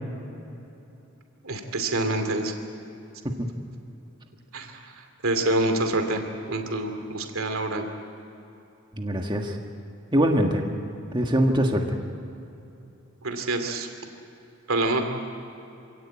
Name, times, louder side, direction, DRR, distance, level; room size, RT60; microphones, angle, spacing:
voice 1, 1.4-2.5 4.5-4.7 5.2-6.2 6.5-7.8 13.2-13.9 14.7-15.1, right 2 dB, 75° right, 5 dB, 2.5 m, -26 dB
voice 2, 8.9-9.5 10.1-10.6 11.1-12.0, equal, 20° right, 2 dB, 1.7 m, -23 dB
27.5 x 17.5 x 8.7 m, 2.9 s
head